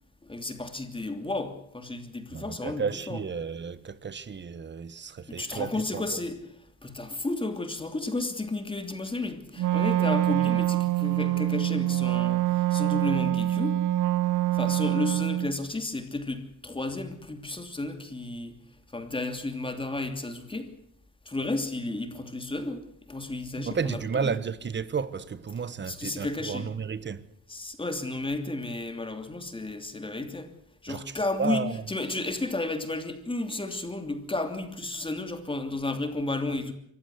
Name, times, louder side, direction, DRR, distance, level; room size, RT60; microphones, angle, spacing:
voice 1, 0.2-3.2 5.3-6.4 6.8-13.8 14.5-18.6 18.9-20.7 21.2-24.3 25.8-26.7 27.5-30.5 30.8-36.7, left 2 dB, 15° left, 2.9 m, -33 dB
voice 2, 2.3-6.2 23.5-27.3 30.9-31.8, right 6 dB, 35° right, 1.3 m, -32 dB
Wind instrument woodwind instrument, 9.6-15.5, right 15 dB, 90° right, 1.1 m, -25 dB
24.5 x 15.5 x 8.0 m
cardioid pair, 90°, 30 cm